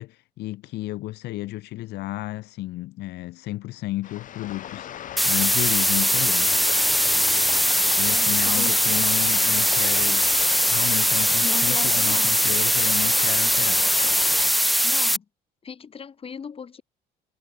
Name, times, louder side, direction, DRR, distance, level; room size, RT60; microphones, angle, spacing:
voice 1, 0.0-6.6 8.0-10.2 10.7-13.8, left 17 dB, 80° left, 1.5 m, -32 dB
sound 1, 4.0-14.5, left 10 dB, 50° left, 1.0 m, -35 dB
sound 2, 5.2-15.2, equal, ahead, 0.6 m, -21 dB
voice 2, 8.1-9.1 11.4-12.4 13.5-13.6 13.8-14.1 14.8-15.3 15.6-16.8, left 6 dB, 35° left, 2.2 m, -38 dB
cardioid pair, 110°, 17 cm